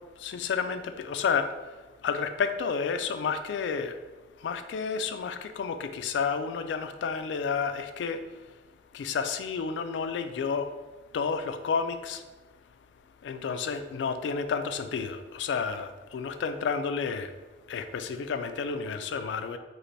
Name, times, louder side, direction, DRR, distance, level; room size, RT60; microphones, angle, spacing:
voice 1, 0.2-1.5 2.0-3.9 4.4-8.2 8.9-10.6 11.1-12.2 13.2-17.3 17.7-19.6, left 6 dB, 85° left, 9 dB, 0.3 m, -30 dB
3.2 x 2.5 x 3.9 m, 1.2 s
head